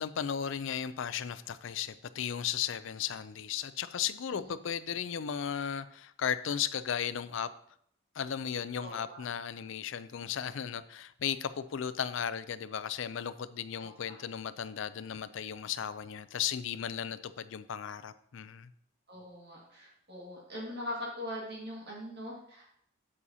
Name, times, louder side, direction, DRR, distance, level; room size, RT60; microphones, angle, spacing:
voice 1, 0.0-7.5 8.2-18.7, left 8 dB, 65° left, 14 dB, 0.4 m, -35 dB
voice 2, 8.8-9.2 13.8-14.1 19.1-22.6, left 1 dB, 50° right, -4 dB, 1.9 m, -42 dB
8.3 x 7.4 x 2.7 m, 0.67 s
head